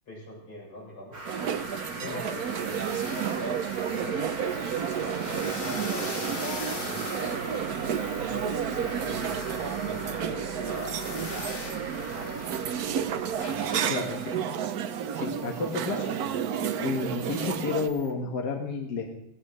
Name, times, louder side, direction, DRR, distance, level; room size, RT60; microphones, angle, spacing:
voice 1, 0.1-1.3 1.9-4.2 5.0-7.8 8.2-13.1 18.0-18.2, left 1 dB, 85° left, -5 dB, 8.5 m, -43 dB
sound 1, 1.1-18.1, right 1 dB, 85° right, 5.1 m, -41 dB
sound 2, 1.2-17.9, right 8 dB, 65° right, 0.9 m, -31 dB
sound 3, 1.6-16.2, left 3 dB, 70° left, 2.8 m, -43 dB
voice 2, 13.9-14.4 15.1-16.2 16.8-19.1, left 4 dB, 55° left, 1 dB, 1.9 m, -31 dB
18.0 x 17.5 x 3.2 m, 0.77 s
omnidirectional pair, 2.3 m